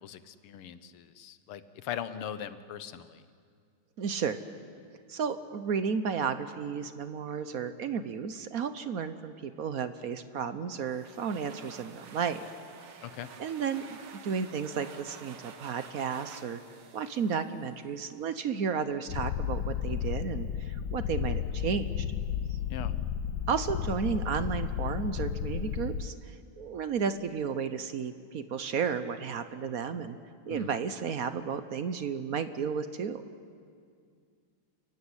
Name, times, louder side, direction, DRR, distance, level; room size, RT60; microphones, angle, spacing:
voice 1, 0.0-3.2 13.0-13.3 22.7-22.9 30.5-30.7, left 9 dB, 90° left, 12 dB, 1.9 m, -40 dB
voice 2, 4.0-4.4 5.1-12.4 12.9-13.0 13.4-16.6 16.9-22.0 23.5-30.2 30.5-33.2, right 6 dB, 55° right, 11 dB, 1.0 m, -33 dB
sound 1, 10.7-18.2, right 6 dB, 75° right, 2.3 m, -50 dB
Purr, 19.1-26.1, left 9 dB, 65° left, 1.3 m, -33 dB
28.5 x 15.5 x 9.8 m, 2.2 s
omnidirectional pair, 2.4 m